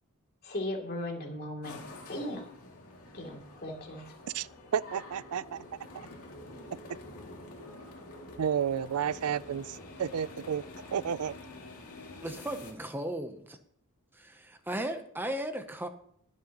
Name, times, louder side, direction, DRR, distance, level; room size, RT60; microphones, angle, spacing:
voice 1, 0.4-1.8 2.1-2.5 3.1-4.1, left 1 dB, 45° left, 2.8 m, -37 dB
sound 1, 1.6-12.7, left 2 dB, 85° left, 2.4 m, -48 dB
voice 2, 4.7-5.6 8.4-10.6 10.9-11.3, right 8 dB, 75° right, 0.4 m, -31 dB
voice 3, 12.2-13.4 14.1-15.9, right 1 dB, 10° right, 0.7 m, -36 dB
22.5 x 7.5 x 3.0 m
head